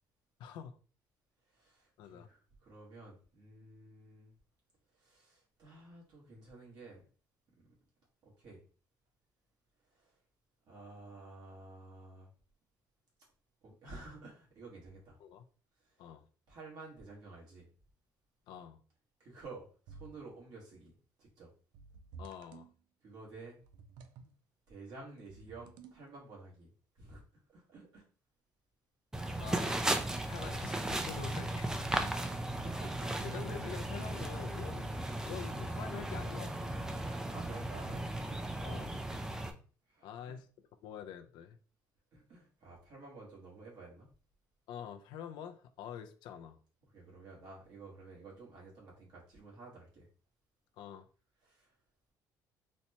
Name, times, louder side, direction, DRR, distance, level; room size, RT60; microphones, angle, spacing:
voice 1, 0.4-0.8 2.0-2.3 15.2-15.4 16.0-16.2 18.5-18.8 22.2-22.7 29.4-29.8 30.3-31.8 33.2-36.7 38.6-38.9 40.0-40.5 40.8-41.6 44.7-46.6 50.8-51.1, left 8 dB, 75° left, 0.4 m, -46 dB
voice 2, 1.5-4.3 4.9-7.0 8.2-8.6 9.9-10.2 10.6-12.3 13.6-15.2 15.8-16.1 16.5-17.7 19.2-21.5 23.0-23.6 24.7-28.0 31.9-33.4 36.7-38.6 39.9-40.3 42.1-44.1 46.9-50.1 51.4-51.7, right 3 dB, 60° right, 1.3 m, -52 dB
sound 1, 19.9-20.4 21.7-22.7 23.6-24.3 25.3-26.1, right 5 dB, 85° right, 0.4 m, -53 dB
sound 2, 29.1-39.5, right 1 dB, 10° right, 0.3 m, -36 dB
4.1 x 2.1 x 2.8 m
cardioid pair, 140°, 8 cm